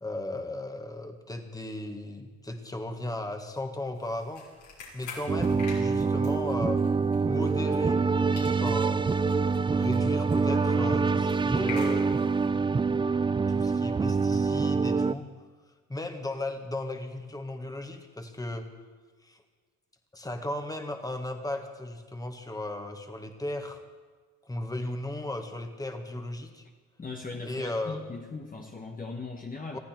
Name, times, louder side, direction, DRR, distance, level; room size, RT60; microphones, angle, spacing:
voice 1, 0.0-4.5 4.9-6.8 7.2-8.0 8.6-9.1 9.7-12.2 13.5-15.3 15.9-18.7 19.2-19.4 20.1-23.8 24.5-26.6 27.4-28.0 29.7-29.8, left 1 dB, 10° left, 5 dB, 1.8 m, -35 dB
sound 1, 3.9-8.1 8.3-12.4, left 4 dB, 75° left, 4.9 m, -46 dB
sound 2, 5.3-15.1, right 4 dB, 15° right, 0.4 m, -25 dB
voice 2, 27.0-29.8, left 3 dB, 30° left, 1 dB, 1.4 m, -39 dB
20.5 x 14.5 x 4.6 m, 1.4 s
cardioid pair, 90°, 30 cm